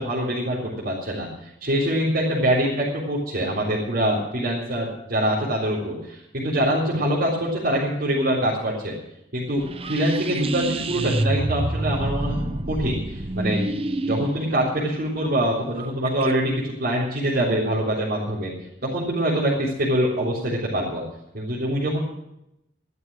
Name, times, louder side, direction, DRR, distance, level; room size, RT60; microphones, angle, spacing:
voice 1, 0.0-8.9 9.3-12.4 12.7-13.6 14.0-18.5 18.8-21.0 21.3-22.0, right 1 dB, 55° right, -7 dB, 3.7 m, -24 dB
sound 1, 9.6-16.3, right 2 dB, 35° right, 0.8 m, -28 dB
14.0 x 12.0 x 6.3 m, 0.84 s
head